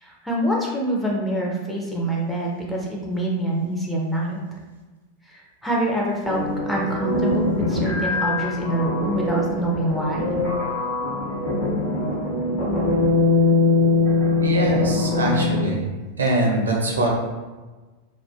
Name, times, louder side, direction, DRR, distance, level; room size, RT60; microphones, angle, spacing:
voice 1, 0.0-4.4 5.3-10.3, right 1 dB, 5° left, -4 dB, 0.5 m, -25 dB
sound 1, 6.3-15.8, left 3 dB, 35° left, 0.8 m, -22 dB
voice 2, 14.4-15.8 16.2-17.2, right 1 dB, 70° right, -1 dB, 0.5 m, -23 dB
2.3 x 2.1 x 2.6 m, 1.3 s
figure-of-eight pair, 90°, 0 cm